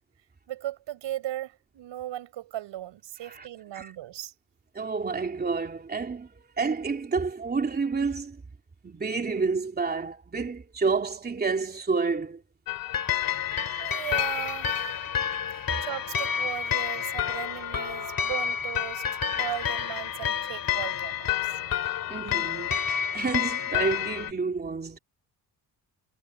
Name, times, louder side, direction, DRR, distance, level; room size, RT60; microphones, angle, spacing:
voice 1, 0.5-4.3 13.8-15.1 15.8-21.5, right 13 dB, 80° right, 5.7 m, -37 dB
voice 2, 4.7-8.4 8.8-12.4 22.1-25.0, right 4 dB, 20° right, 3.0 m, -29 dB
sound 1, 12.7-24.3, left 9 dB, 50° left, 2.7 m, -29 dB
cardioid pair, 155°, 43 cm